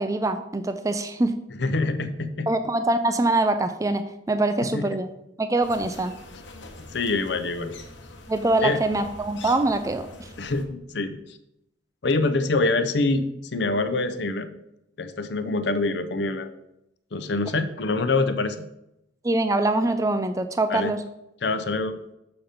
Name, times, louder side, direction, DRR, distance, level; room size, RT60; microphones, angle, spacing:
voice 1, 0.0-1.4 2.5-5.1 5.4-6.1 8.3-10.3 19.2-21.0, right 2 dB, 20° right, 9 dB, 0.4 m, -24 dB
voice 2, 1.6-2.5 4.7-4.9 6.9-7.7 8.6-8.8 10.4-11.2 12.0-13.3 13.5-14.5 15.0-16.5 17.1-18.7 20.7-20.9 21.4-22.0, left 3 dB, 65° left, 10 dB, 0.7 m, -25 dB
sound 1, 5.6-10.7, left 2 dB, 80° left, 1.1 m, -44 dB
6.9 x 5.1 x 5.7 m, 0.82 s
head